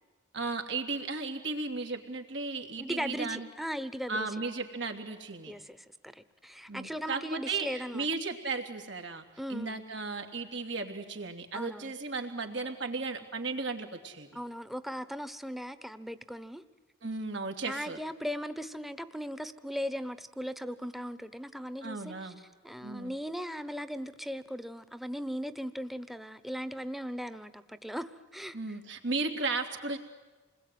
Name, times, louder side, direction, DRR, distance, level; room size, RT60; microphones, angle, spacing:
voice 1, 0.3-3.5 4.1-5.5 6.7-9.2 9.5-14.3 17.0-18.0 21.8-22.4 22.8-23.1 28.5-30.0, right 3 dB, 80° right, 4 dB, 3.0 m, -35 dB
voice 2, 2.8-4.3 5.5-8.1 9.4-9.8 11.5-11.9 14.3-16.6 17.6-22.3 22.6-28.6, equal, ahead, 12 dB, 1.0 m, -38 dB
28.0 x 21.0 x 9.4 m, 1.2 s
head